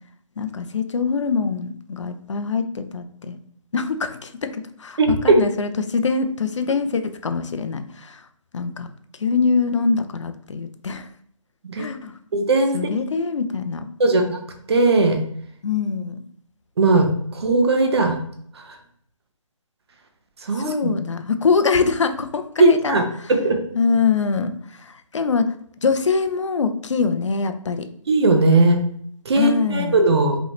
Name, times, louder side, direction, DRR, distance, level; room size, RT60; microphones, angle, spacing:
voice 1, 0.4-3.4 3.7-8.3 8.5-8.9 9.2-11.1 11.8-12.2 12.7-13.9 15.6-16.2 20.5-23.0 23.7-27.9 29.4-30.0, left 5 dB, 60° left, 9 dB, 0.6 m, -23 dB
voice 2, 5.0-5.4 11.6-11.8 12.3-12.8 14.0-14.4 14.7-15.2 16.8-18.2 18.5-18.6 20.4-20.9 22.6-23.0 23.3-23.6 28.1-28.8 29.2-30.4, right 2 dB, 50° right, 5 dB, 0.9 m, -18 dB
5.3 x 3.2 x 3.0 m, 0.66 s
figure-of-eight pair, 160°, 17 cm